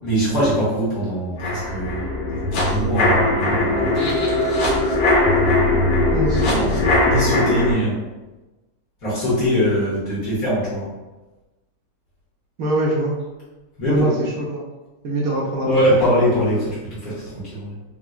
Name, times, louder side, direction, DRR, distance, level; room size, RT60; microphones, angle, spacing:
voice 1, 0.0-2.1 2.5-4.1 6.4-6.7 7.0-8.0 9.0-10.9 13.8-14.1 15.6-17.7, equal, 55° left, -10 dB, 1.5 m, -22 dB
sound 1, 1.4-7.7, left 2 dB, 80° left, 1.4 m, -19 dB
voice 2, 6.1-6.7 12.6-13.1 13.9-14.6 15.0-16.0, right 1 dB, 70° right, -3 dB, 0.9 m, -23 dB
3.8 x 2.1 x 2.3 m, 1.1 s
omnidirectional pair, 1.9 m